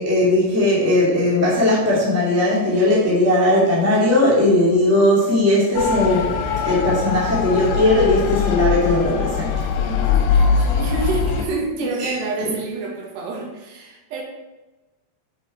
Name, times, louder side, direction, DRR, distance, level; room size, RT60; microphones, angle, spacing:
voice 1, 0.0-6.4 6.6-9.5 12.0-12.1, left 1 dB, 10° right, -6 dB, 0.9 m, -18 dB
Motor vehicle (road) / Siren, 5.8-11.5, left 6 dB, 80° left, 2.6 m, -21 dB
voice 2, 9.9-14.2, right 3 dB, 75° right, 0 dB, 3.4 m, -28 dB
7.5 x 5.6 x 4.3 m, 1.1 s
omnidirectional pair, 5.0 m